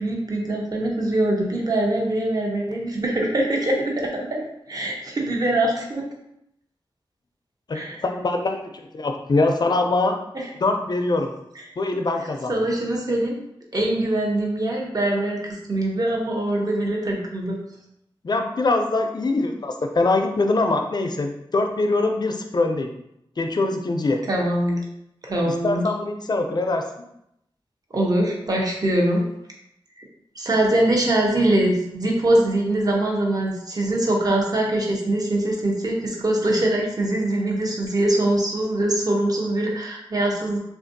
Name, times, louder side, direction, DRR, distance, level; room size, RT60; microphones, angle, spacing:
voice 1, 0.0-4.4 4.7-6.0 7.7-8.0 12.5-13.4 13.7-17.6 24.3-24.8 25.2-25.9 27.9-29.2 30.4-40.6, right 1 dB, 40° right, -1 dB, 0.7 m, -23 dB
voice 2, 7.7-10.2 10.6-11.3 11.8-12.6 18.2-22.9 23.4-24.2 25.5-26.9, left 2 dB, 50° left, 4 dB, 0.4 m, -23 dB
3.4 x 2.5 x 2.6 m, 0.79 s
wide cardioid pair, 95°, 9 cm